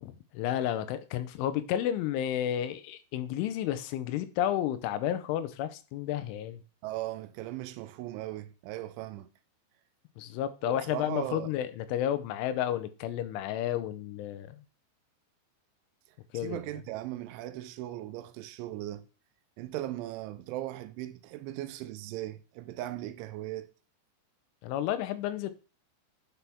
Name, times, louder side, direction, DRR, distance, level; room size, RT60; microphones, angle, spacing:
voice 1, 0.0-6.6 10.2-14.6 16.3-16.6 24.6-25.5, left 11 dB, 90° left, 3.2 m, -31 dB
voice 2, 6.8-9.3 10.6-11.5 16.3-19.1 19.6-23.7, right 14 dB, 85° right, 3.0 m, -38 dB
10.0 x 5.8 x 3.5 m
omnidirectional pair, 5.4 m